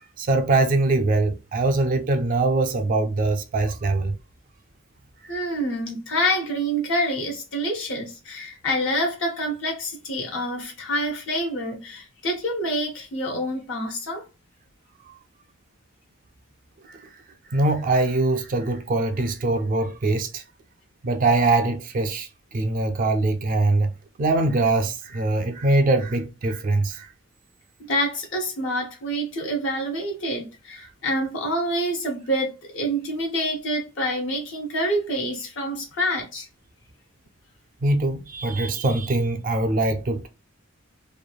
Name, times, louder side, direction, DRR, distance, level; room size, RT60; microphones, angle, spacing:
voice 1, 0.2-4.2 5.2-5.4 16.9-17.0 17.5-20.4 21.0-22.3 22.5-23.9 24.2-27.1 37.8-40.3, right 2 dB, 40° right, 0.3 m, -22 dB
voice 2, 5.3-14.3 27.8-36.5, equal, 60° left, 0.6 m, -27 dB
3.1 x 2.3 x 2.2 m
head